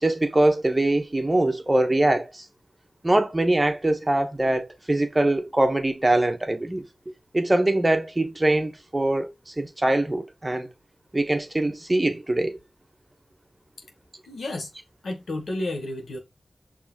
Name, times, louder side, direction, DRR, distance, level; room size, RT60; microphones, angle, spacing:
voice 1, 0.0-2.4 3.0-6.9 7.3-10.7 11.1-12.6, right 1 dB, 25° right, 1.1 m, -23 dB
voice 2, 14.3-14.7 15.0-16.2, left 2 dB, 85° left, 1.3 m, -31 dB
6.0 x 3.2 x 2.3 m
cardioid pair, 45°, 0 cm